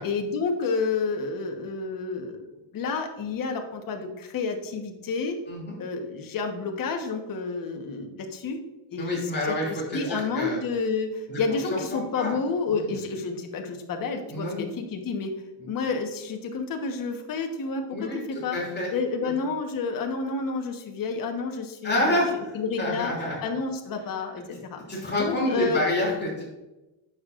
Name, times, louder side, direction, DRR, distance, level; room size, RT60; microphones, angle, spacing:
voice 1, 0.0-2.4 2.7-5.4 5.8-8.6 8.9-15.3 15.7-18.6 18.9-23.1 23.4-25.8, left 4 dB, 45° left, 4 dB, 1.2 m, -30 dB
voice 2, 9.0-10.6 11.3-11.4 11.7-12.3 12.7-12.9 14.3-14.7 15.6-15.7 17.9-18.9 19.2-19.3 21.8-23.4 24.9-26.4, left 1 dB, 20° left, -4 dB, 2.7 m, -28 dB
9.3 x 6.8 x 2.5 m, 1.0 s
cardioid pair, 135°, 47 cm